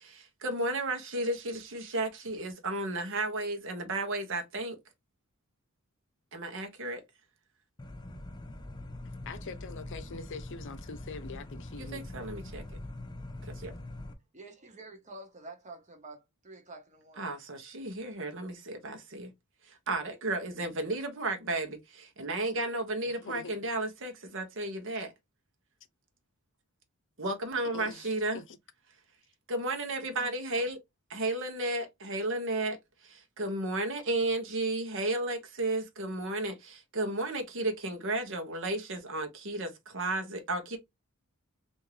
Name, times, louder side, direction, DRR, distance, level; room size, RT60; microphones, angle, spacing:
voice 1, 0.0-4.8 6.3-7.0 11.8-12.6 13.5-13.7 17.2-19.3 19.7-25.1 27.2-28.4 29.5-30.8 31.1-32.8 33.0-40.8, right 2 dB, 60° right, 1.0 m, -33 dB
sound 1, 7.8-14.1, left 1 dB, 20° left, 0.5 m, -43 dB
voice 2, 9.3-12.1 23.0-23.7 27.7-28.6, left 4 dB, 60° left, 0.6 m, -44 dB
voice 3, 14.3-17.3, right 2 dB, 35° right, 1.0 m, -48 dB
3.5 x 2.7 x 3.1 m
head